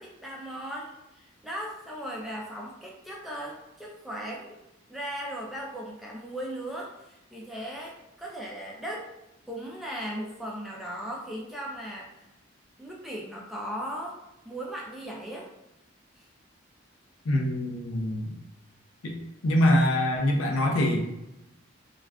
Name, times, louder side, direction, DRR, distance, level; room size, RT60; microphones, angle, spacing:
voice 1, 0.0-4.6 4.9-9.1 9.5-12.1 12.8-14.2 14.4-15.5 16.2-16.3, equal, ahead, -3 dB, 0.3 m, -37 dB
voice 2, 17.3-18.3 19.0-19.2 19.4-21.1, left 1 dB, 90° left, 1 dB, 0.5 m, -24 dB
2.3 x 2.2 x 3.4 m, 0.89 s
head